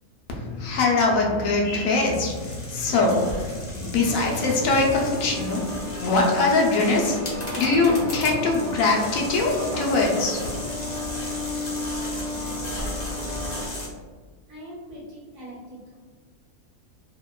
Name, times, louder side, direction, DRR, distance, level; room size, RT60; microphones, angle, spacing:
voice 1, 0.3-5.6 5.9-10.4, left 3 dB, 75° left, -1 dB, 0.9 m, -22 dB
sound 1, 1.9-13.9, left 1 dB, 55° left, 0.4 m, -37 dB
sound 2, 4.0-13.6, left 1 dB, 35° right, 0.9 m, -33 dB
voice 2, 14.5-16.0, equal, 75° right, -7 dB, 1.1 m, -42 dB
2.8 x 2.1 x 2.2 m, 1.5 s
omnidirectional pair, 1.5 m